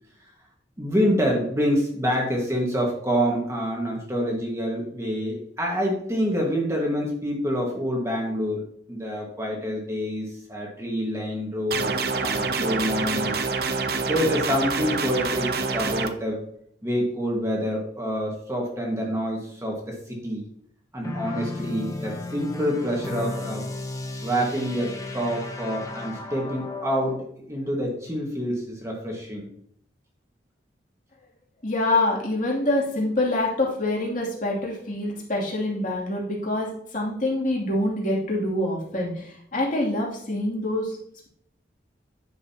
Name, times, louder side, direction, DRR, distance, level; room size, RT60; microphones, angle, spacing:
voice 1, 0.8-8.6 8.9-13.3 14.0-16.4 16.8-20.4 20.9-23.6 24.2-29.5, equal, 15° right, -1 dB, 1.6 m, -27 dB
sound 1, 11.7-16.1, right 4 dB, 55° right, 0.8 m, -26 dB
sound 2, 21.0-27.2, left 2 dB, 20° left, 0.9 m, -34 dB
voice 2, 31.6-41.0, left 1 dB, 45° left, -3 dB, 2.7 m, -26 dB
10.5 x 6.7 x 2.8 m, 0.67 s
head